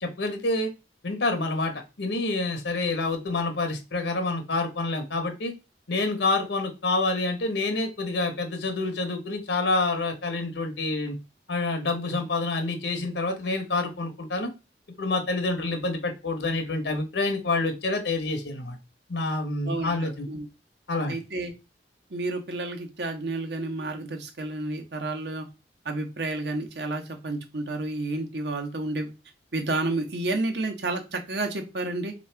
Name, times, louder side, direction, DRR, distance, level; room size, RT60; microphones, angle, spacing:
voice 1, 0.0-0.7 1.0-1.7 2.0-5.5 5.9-11.2 11.5-14.5 15.0-18.8 19.1-20.3 20.9-21.2, left 2 dB, 85° left, 6 dB, 0.9 m, -27 dB
voice 2, 19.6-20.5 21.1-21.5 22.1-25.5 25.8-29.1 29.5-32.1, right 2 dB, 70° right, 3 dB, 1.1 m, -30 dB
3.7 x 3.1 x 4.4 m, 0.27 s
head